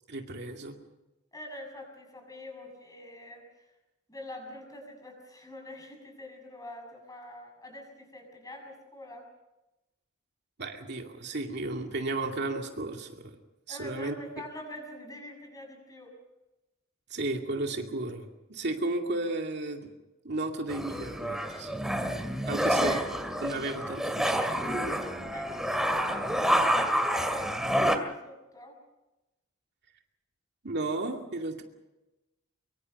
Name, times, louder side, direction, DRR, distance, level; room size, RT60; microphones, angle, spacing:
voice 1, 0.1-0.8 10.6-13.4 13.7-14.2 17.1-19.9 20.2-21.8 22.5-23.0 23.4-24.5 30.6-31.6, right 2 dB, 55° right, 3 dB, 2.4 m, -33 dB
voice 2, 1.3-3.7 4.1-9.3 13.7-16.1 22.6-23.1 25.3-28.8, left 1 dB, 20° left, 2 dB, 6.8 m, -45 dB
sound 1, 20.7-28.0, equal, ahead, 2.2 m, -28 dB
24.5 x 24.0 x 5.4 m, 1.0 s
head